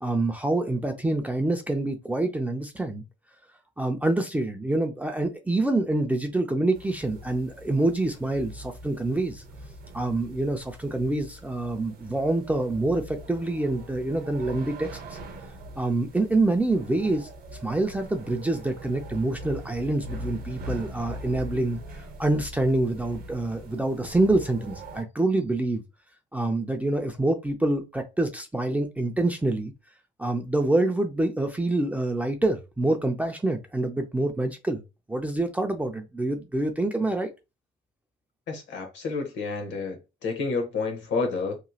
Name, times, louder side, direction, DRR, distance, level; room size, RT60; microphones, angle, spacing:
voice 1, 0.0-3.0 3.8-9.4 9.9-14.9 15.8-17.3 17.6-21.8 22.2-25.8 26.3-29.7 30.2-34.8 35.1-37.3, right 2 dB, 10° right, 0.3 m, -26 dB
sound 1, 6.7-25.0, right 1 dB, 50° right, 0.7 m, -42 dB
voice 2, 38.5-41.6, left 4 dB, 75° left, 1.0 m, -30 dB
3.0 x 2.7 x 2.3 m
cardioid pair, 160°, 19 cm